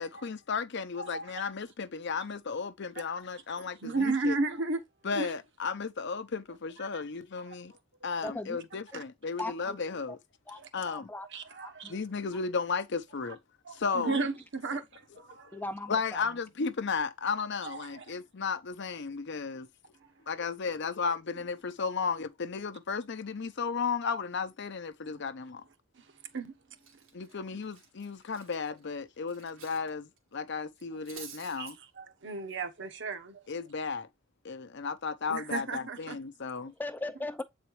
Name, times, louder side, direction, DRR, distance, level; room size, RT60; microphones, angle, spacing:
voice 1, 0.0-4.4 5.0-7.7 8.0-10.2 10.7-11.1 11.9-13.4 13.7-14.2 15.9-19.7 20.3-25.6 27.1-31.8 33.5-34.1 34.4-36.7, left 5 dB, 60° left, 0.7 m, -34 dB
voice 2, 1.0-1.4 3.6-4.8 5.1-5.3 6.9-7.0 7.4-7.6 8.0-8.1 8.9-9.0 10.6-10.7 11.3-12.0 13.2-13.3 13.6-15.6 17.3-18.0 25.1-25.2 25.9-26.0 26.3-26.5 27.5-27.6 31.6-33.4 35.3-36.2, right 3 dB, 60° right, 1.1 m, -35 dB
voice 3, 8.2-8.6 8.9-9.0 9.4-9.8 10.5-11.3 11.6-11.9 14.1-14.2 15.5-16.2 36.8-37.4, left 2 dB, 10° left, 0.4 m, -38 dB
Cutlery silverware, 26.2-26.4 26.8-29.9 30.2-30.3 30.7-31.7, right 7 dB, 85° right, 1.9 m, -50 dB
8.0 x 4.3 x 3.1 m
head